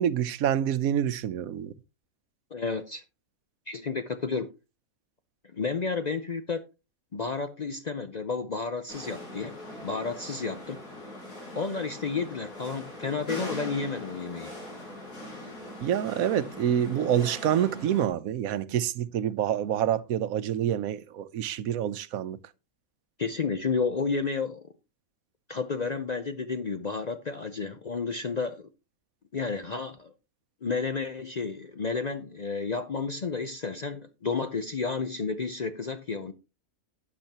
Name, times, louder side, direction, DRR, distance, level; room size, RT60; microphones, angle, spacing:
voice 1, 0.0-1.7 15.8-22.4, right 10 dB, 85° right, 1.1 m, -27 dB
voice 2, 2.5-3.0 3.7-4.5 5.5-6.6 7.1-10.8 11.5-14.5 23.2-24.6 25.5-28.7 29.3-30.1 30.6-36.3, left 4 dB, 45° left, 0.5 m, -31 dB
sound 1, 8.9-18.1, left 1 dB, 90° left, 5.5 m, -41 dB
12.0 x 8.8 x 2.9 m
omnidirectional pair, 1.4 m